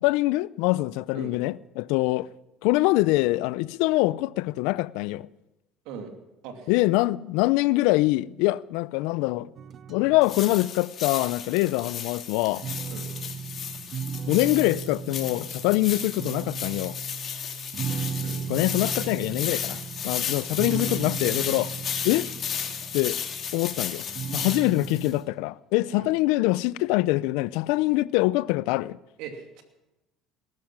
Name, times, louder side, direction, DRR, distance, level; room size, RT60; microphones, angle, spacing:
voice 1, 0.0-2.3 2.6-5.3 6.7-9.5 9.9-12.6 14.3-17.0 18.5-21.7 22.0-22.3 22.9-23.2 23.5-24.0 24.3-29.0, left 19 dB, 80° left, 0.5 m, -24 dB
sound 1, 9.6-10.7 12.5-25.2, right 6 dB, 45° right, 0.6 m, -36 dB
sound 2, 10.2-25.1, left 8 dB, 45° left, 2.7 m, -34 dB
voice 2, 29.2-29.6, right 6 dB, 75° right, 2.7 m, -39 dB
19.5 x 12.0 x 6.1 m
supercardioid pair, 100°, 0 cm